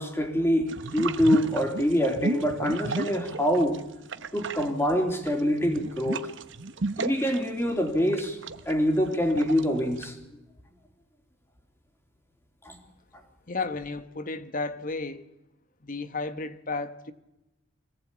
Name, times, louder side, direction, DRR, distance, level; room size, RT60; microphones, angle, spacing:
voice 1, 0.0-3.8 4.3-6.3 7.0-8.4 8.6-10.2 12.6-12.8, equal, 10° left, 3.4 m, -25 dB
sound 1, 0.7-3.8 4.1-10.0, right 3 dB, 60° right, 1.1 m, -34 dB
voice 2, 13.5-15.3 15.8-17.1, left 3 dB, 40° left, 1.3 m, -33 dB
25.0 x 18.5 x 8.7 m
head